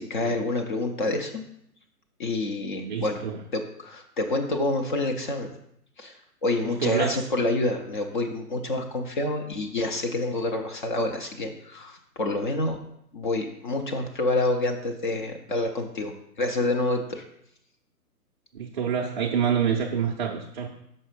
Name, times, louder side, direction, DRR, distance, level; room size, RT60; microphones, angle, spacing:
voice 1, 0.0-1.4 2.2-3.2 3.5-5.5 6.0-12.8 13.1-17.2, left 2 dB, 30° left, 3 dB, 0.6 m, -28 dB
voice 2, 2.8-3.4 6.8-7.2 18.5-20.7, right 7 dB, 30° right, -1 dB, 0.5 m, -27 dB
5.5 x 5.5 x 5.0 m, 0.76 s
figure-of-eight pair, 130°, 47 cm